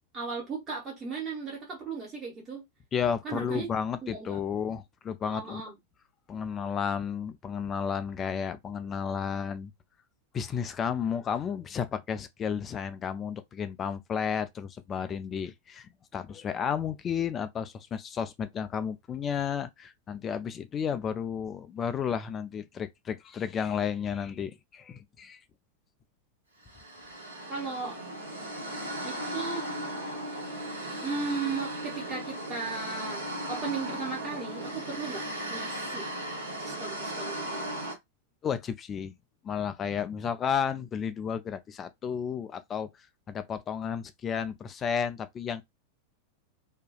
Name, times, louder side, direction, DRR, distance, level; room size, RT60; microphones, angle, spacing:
voice 1, 0.1-2.6 3.2-3.7 4.0-4.4 5.3-5.7 27.5-28.0 29.0-29.7 31.0-35.2 35.5-36.1 36.6-37.8, right 4 dB, 25° right, 0.9 m, -36 dB
voice 2, 2.9-5.6 6.3-9.7 10.3-25.4 38.4-39.1 39.4-42.9 43.3-45.6, left 7 dB, 25° left, 0.4 m, -32 dB
sound 1, 26.7-37.9, right 1 dB, 80° right, 1.1 m, -36 dB
2.6 x 2.3 x 2.2 m
figure-of-eight pair, 90°, 0 cm